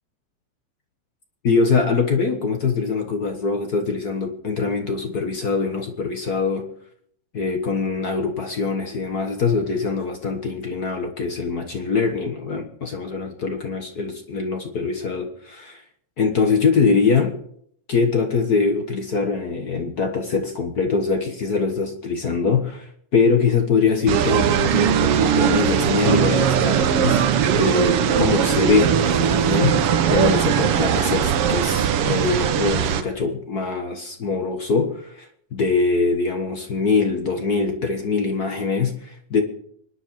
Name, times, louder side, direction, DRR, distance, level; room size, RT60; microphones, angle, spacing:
voice 1, 1.4-6.7 7.3-15.8 16.2-17.3 17.9-27.2 27.5-39.4, left 4 dB, 50° left, 5 dB, 1.1 m, -23 dB
sound 1, 24.1-33.0, right 8 dB, 65° right, 1.6 m, -19 dB
25.0 x 9.8 x 4.8 m, 0.68 s
omnidirectional pair, 3.4 m